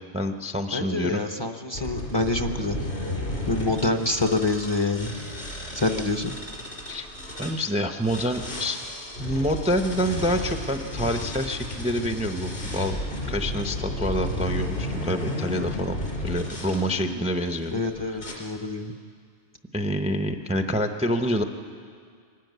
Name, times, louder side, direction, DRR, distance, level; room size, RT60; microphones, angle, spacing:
voice 1, 0.0-1.2 6.9-7.1 7.4-8.8 9.2-13.0 13.3-16.0 16.2-18.2 19.7-21.4, equal, 5° right, 6 dB, 0.6 m, -27 dB
voice 2, 0.7-2.8 3.5-5.1 5.7-6.3 16.9-17.2 17.7-18.9, left 2 dB, 25° left, 6 dB, 0.8 m, -26 dB
sound 1, 1.7-7.6 8.0-16.8 17.5-17.8 18.2-18.3, left 1 dB, 65° left, 3.9 m, -33 dB
23.0 x 13.0 x 9.4 m, 2.1 s
omnidirectional pair, 1.2 m